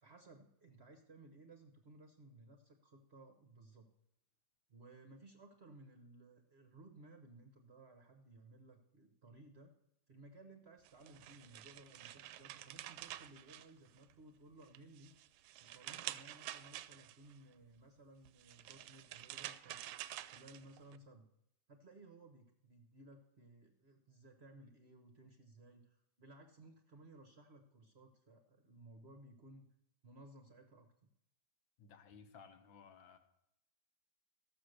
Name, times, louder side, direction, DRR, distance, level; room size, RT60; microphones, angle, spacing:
voice 1, 0.0-3.9 4.7-9.7 10.1-15.1 15.6-19.8 20.3-21.3 21.7-29.7 30.0-30.9, right 2 dB, 40° right, 5 dB, 1.0 m, -59 dB
sound 1, 10.9-14.2 14.6-17.3 18.3-21.0, right 13 dB, 85° right, 1.4 m, -49 dB
voice 2, 31.8-33.2, left 6 dB, 75° left, 8 dB, 1.7 m, -58 dB
14.0 x 6.9 x 6.5 m, 0.81 s
omnidirectional pair, 2.2 m